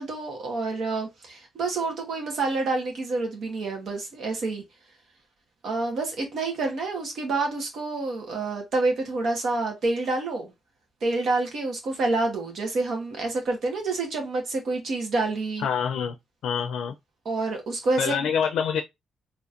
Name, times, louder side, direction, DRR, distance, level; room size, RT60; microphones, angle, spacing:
voice 1, 0.0-4.6 5.6-10.5 11.0-15.7 17.2-18.3, right 3 dB, 60° right, 1.3 m, -28 dB
voice 2, 15.6-16.1 16.4-16.9 18.0-18.8, left 7 dB, 80° left, 0.4 m, -26 dB
4.2 x 3.0 x 2.5 m
cardioid pair, 145°, 0 cm